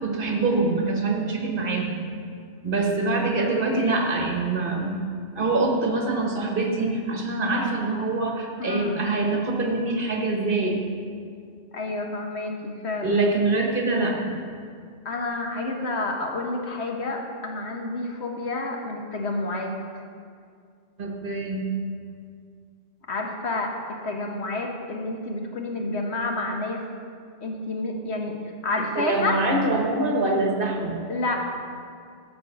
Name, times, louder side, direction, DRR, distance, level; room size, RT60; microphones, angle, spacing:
voice 1, 0.0-2.0 2.6-5.0 5.4-10.8 13.0-14.4 21.0-21.7 28.9-31.0, right 2 dB, 50° right, 1 dB, 1.5 m, -24 dB
voice 2, 3.3-4.0 8.6-9.0 11.7-13.2 15.0-20.0 23.1-23.7 24.0-26.8 27.4-28.4 28.6-29.4 31.1-31.4, left 2 dB, 70° left, 2 dB, 1.5 m, -29 dB
13.5 x 5.2 x 7.0 m, 2.2 s
omnidirectional pair, 1.1 m